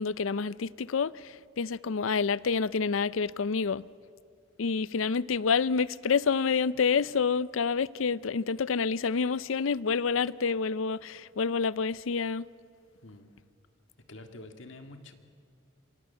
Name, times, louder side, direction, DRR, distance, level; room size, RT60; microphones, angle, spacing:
voice 1, 0.0-3.8 4.6-12.4, left 5 dB, 90° left, 0.5 m, -28 dB
voice 2, 13.0-13.3 14.1-15.1, left 2 dB, 65° left, 1.9 m, -47 dB
27.5 x 24.5 x 6.9 m
head